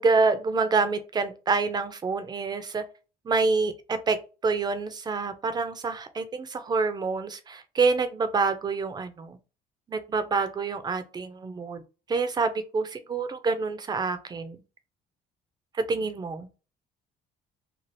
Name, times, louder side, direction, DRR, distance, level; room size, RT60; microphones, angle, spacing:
voice 1, 0.0-2.9 3.3-9.3 9.9-11.8 12.1-14.6 15.9-16.5, right 4 dB, 25° right, 0.4 m, -27 dB
2.6 x 2.4 x 3.2 m
cardioid pair, 110°, 17 cm